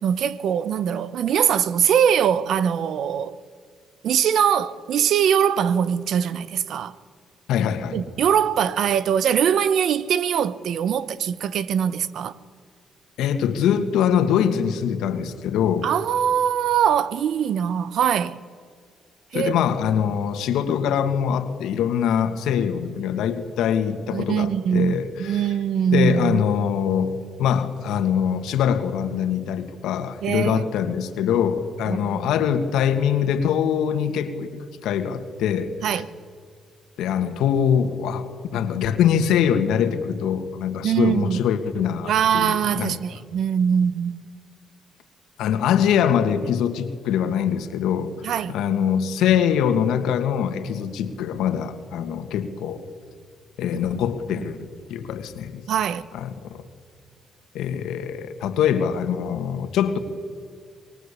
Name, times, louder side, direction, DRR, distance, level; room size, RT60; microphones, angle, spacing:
voice 1, 0.0-3.4 4.0-6.9 7.9-12.3 15.8-18.4 19.3-19.6 24.1-26.4 30.2-30.6 31.9-32.3 35.8-36.1 40.8-41.4 42.0-44.2 48.2-48.5 53.7-53.8 54.4-54.5 55.7-56.0, right 8 dB, 70° right, 1.0 m, -22 dB
voice 2, 7.5-8.0 13.2-15.9 19.3-25.4 25.9-36.0 37.0-43.0 45.4-48.2 48.5-52.9 53.6-55.6 56.1-56.6 57.5-60.0, left 8 dB, 85° left, 1.9 m, -23 dB
24.5 x 22.5 x 8.5 m
cardioid pair, 90°, 0 cm